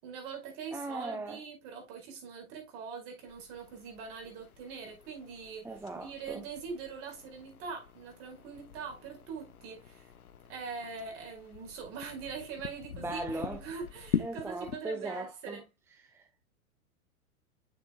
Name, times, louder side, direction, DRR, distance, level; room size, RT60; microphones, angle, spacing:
voice 1, 0.0-5.7 6.0-10.1 10.5-15.6, right 5 dB, 45° right, 4.8 m, -43 dB
voice 2, 0.7-1.4 5.6-6.5 12.9-13.6 14.2-15.6 16.0-16.4, right 2 dB, 5° right, 0.8 m, -39 dB
sound 1, 3.3-14.8, left 8 dB, 85° left, 1.1 m, -43 dB
9.1 x 6.9 x 2.3 m
hypercardioid pair, 105°, 43 cm